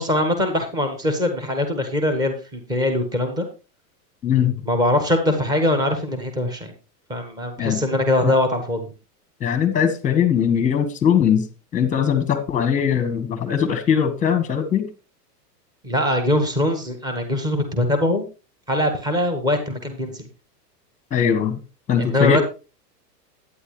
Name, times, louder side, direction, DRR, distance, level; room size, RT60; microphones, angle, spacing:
voice 1, 0.0-3.5 4.7-6.7 7.1-8.9 15.8-18.3 18.7-20.3 22.0-22.4, left 1 dB, 10° right, 6 dB, 1.4 m, -22 dB
voice 2, 4.2-4.6 7.6-7.8 8.2-8.3 9.4-11.5 11.7-14.9 21.1-21.6 21.9-22.4, left 8 dB, 15° left, 10 dB, 1.5 m, -20 dB
11.0 x 9.5 x 3.2 m, 0.31 s
supercardioid pair, 150°, 49 cm